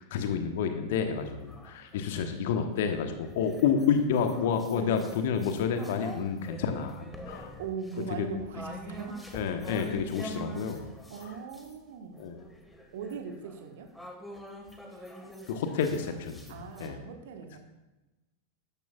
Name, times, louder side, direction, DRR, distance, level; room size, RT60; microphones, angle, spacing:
voice 1, 0.0-7.5 8.1-8.3 9.3-10.9 12.2-12.4 15.5-16.4 16.8-17.0, left 6 dB, 55° left, 6 dB, 1.1 m, -29 dB
sound 1, 0.9-2.3 2.9-11.8 12.1-16.9, right 1 dB, 5° left, 1.6 m, -46 dB
voice 2, 7.6-9.2 11.1-12.3 12.9-13.9 14.9-15.1 16.5-17.6, right 6 dB, 55° right, 5 dB, 1.3 m, -40 dB
12.5 x 10.5 x 2.4 m, 1.1 s
figure-of-eight pair, 90°, 0 cm